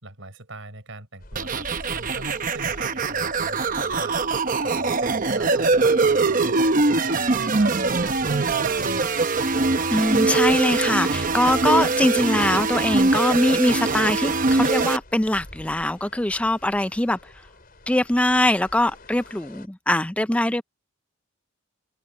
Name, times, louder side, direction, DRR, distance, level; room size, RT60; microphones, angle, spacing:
voice 1, 0.0-4.1 4.6-6.4 6.9-8.7, right 2 dB, 70° right, 5.9 m, -41 dB
sound 1, 1.2-19.7, left 1 dB, 45° left, 5.9 m, -48 dB
sound 2, 1.4-15.0, right 3 dB, 40° right, 0.9 m, -22 dB
voice 2, 9.9-17.2 17.9-20.6, left 1 dB, 5° left, 0.4 m, -22 dB
head